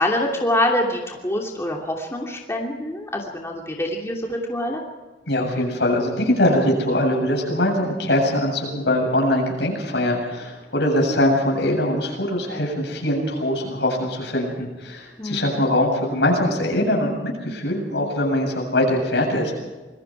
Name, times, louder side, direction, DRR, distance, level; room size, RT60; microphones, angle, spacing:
voice 1, 0.0-4.8 15.2-15.6, left 1 dB, 15° left, 0 dB, 2.9 m, -25 dB
voice 2, 5.3-19.5, left 1 dB, 70° left, 1 dB, 7.8 m, -22 dB
27.0 x 21.5 x 4.8 m, 1.2 s
head